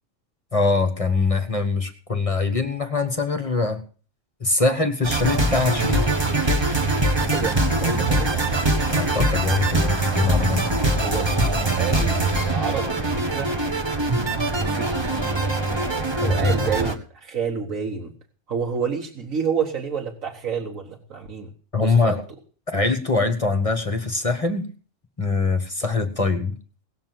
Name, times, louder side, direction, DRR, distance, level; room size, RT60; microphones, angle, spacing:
voice 1, 0.5-3.8 4.4-6.1 8.9-10.6 16.2-16.5 21.7-22.2 22.7-24.6 25.2-26.6, left 3 dB, 25° left, 7 dB, 1.3 m, -23 dB
sound 1, 5.0-16.9, right 2 dB, 20° right, 1.4 m, -22 dB
voice 2, 7.3-8.3 11.0-13.5 14.5-15.0 16.2-18.1 18.5-21.5 21.8-22.2, right 6 dB, 90° right, 0 dB, 1.9 m, -29 dB
18.5 x 6.6 x 7.6 m, 0.40 s
omnidirectional pair, 1.3 m